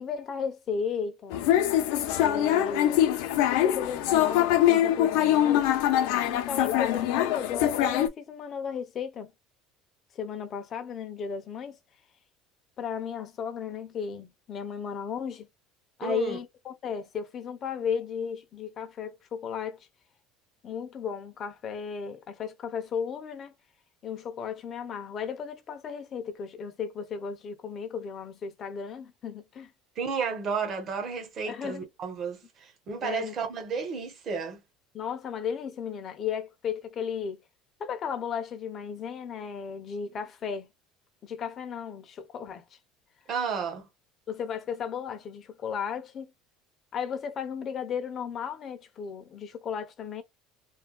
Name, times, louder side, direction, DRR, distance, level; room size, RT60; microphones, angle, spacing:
voice 1, 0.0-1.4 2.2-3.1 3.5-5.7 6.2-9.3 10.1-11.8 12.8-15.5 16.0-19.8 20.6-23.5 24.0-29.7 31.5-31.9 33.0-33.3 34.9-37.4 37.8-40.7 41.2-42.6 44.3-46.3 46.9-50.2, left 7 dB, 35° left, 0.6 m, -35 dB
sound 1, 1.3-8.1, left 12 dB, 80° left, 0.6 m, -23 dB
voice 2, 16.0-16.4 30.0-34.6 43.3-43.9, right 5 dB, 35° right, 1.0 m, -32 dB
3.4 x 2.2 x 2.3 m
cardioid pair, 155°, 0 cm